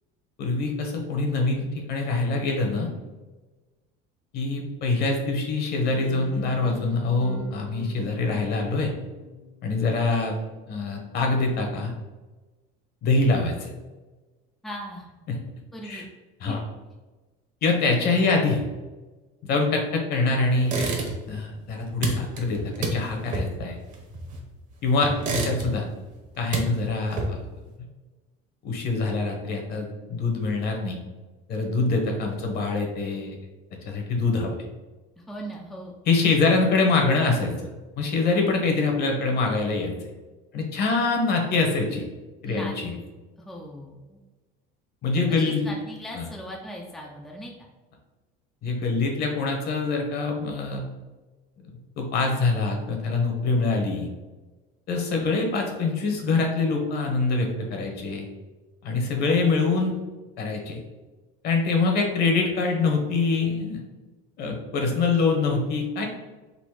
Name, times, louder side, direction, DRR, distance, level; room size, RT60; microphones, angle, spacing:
voice 1, 0.4-2.9 4.3-8.9 9.6-10.4 10.7-11.9 13.0-13.7 15.3-15.4 15.8-16.0 16.4-16.6 17.6-18.6 19.4-20.9 21.3-23.8 24.8-25.9 26.4-27.4 28.6-31.0 31.5-33.3 33.8-34.5 36.1-37.5 38.0-39.9 40.5-42.0 42.4-42.9 45.0-45.7 46.1-46.2 48.6-50.9 52.0-54.1 54.9-58.3 58.8-59.9 60.4-60.8 61.4-63.8 64.4-66.0, left 3 dB, 50° left, 2 dB, 1.1 m, -24 dB
sound 1, 5.9-9.9, left 3 dB, 80° left, 0.8 m, -41 dB
voice 2, 14.6-15.0 15.7-16.1 16.4-16.5 35.2-35.9 42.4-43.0 43.4-44.2 45.3-47.5, equal, ahead, -2 dB, 0.5 m, -39 dB
sound 2, 20.6-21.4 21.7-24.6 25.0-26.0 26.3-27.6, right 2 dB, 40° right, 1.0 m, -29 dB
4.1 x 2.7 x 4.7 m, 1.2 s
cardioid pair, 145°, 21 cm